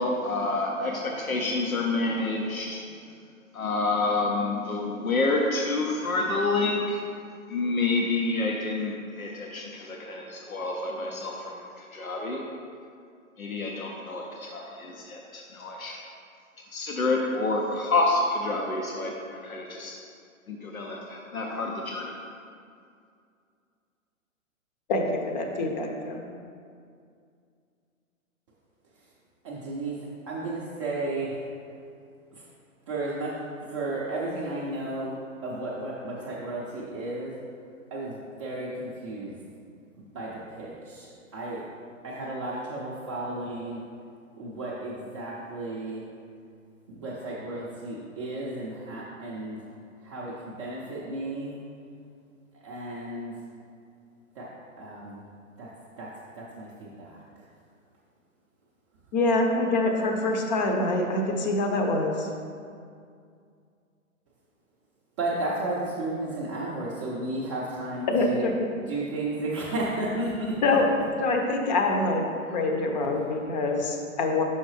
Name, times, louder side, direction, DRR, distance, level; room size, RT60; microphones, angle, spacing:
voice 1, 0.0-2.8 3.5-7.0 7.5-12.4 13.4-16.0 16.7-19.1 19.4-19.9 20.5-22.1, left 2 dB, 85° left, -1 dB, 0.8 m, -28 dB
voice 2, 24.9-26.2 59.1-62.3 68.1-68.5 70.6-70.9 71.2-72.2 72.5-74.4, left 2 dB, 35° left, 3 dB, 0.7 m, -25 dB
voice 3, 29.4-30.0 30.3-31.5 32.3-32.5 32.9-33.4 33.7-37.4 37.9-39.4 40.1-41.1 41.3-41.6 42.0-43.8 44.3-46.0 46.9-49.7 50.0-51.5 52.6-53.3 54.3-54.5 54.8-55.2 55.6-55.7 56.0-57.2 65.2-68.6 68.9-70.6, right 2 dB, 25° right, -6 dB, 0.5 m, -33 dB
5.9 x 5.6 x 3.2 m, 2.3 s
figure-of-eight pair, 120°, 41 cm